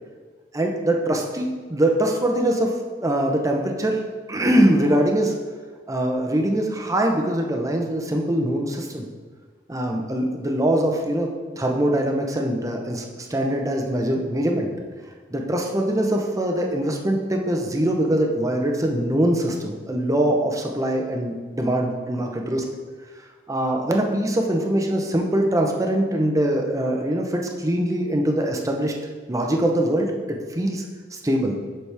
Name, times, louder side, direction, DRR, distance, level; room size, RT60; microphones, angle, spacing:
voice 1, 0.5-2.7 3.0-4.0 4.3-5.4 5.9-9.0 9.7-11.3 11.6-14.7 15.3-22.6 23.5-28.9 29.3-30.1 30.5-30.8 31.2-31.6, right 1 dB, 20° right, 2 dB, 0.7 m, -22 dB
7.1 x 6.1 x 3.4 m, 1.5 s
head